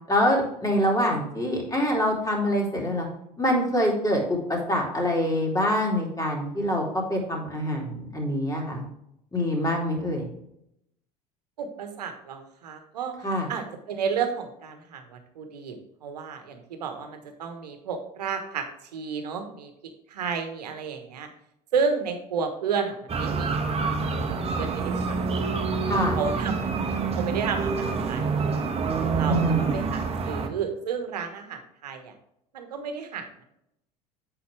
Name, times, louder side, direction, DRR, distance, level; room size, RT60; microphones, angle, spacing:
voice 1, 0.1-3.1 3.4-8.8 9.3-10.3 13.2-13.5 25.9-26.2 29.3-29.8, equal, 15° left, -1 dB, 2.9 m, -25 dB
voice 2, 11.6-13.1 13.5-18.7 18.9-19.7 20.1-21.3 21.7-25.4 26.1-28.8 29.1-32.1 32.5-33.4, right 6 dB, 75° right, 7 dB, 1.2 m, -32 dB
sound 1, 23.1-30.5, right 5 dB, 30° right, 1.2 m, -27 dB
8.1 x 5.7 x 3.3 m, 0.78 s
figure-of-eight pair, 70°, 21 cm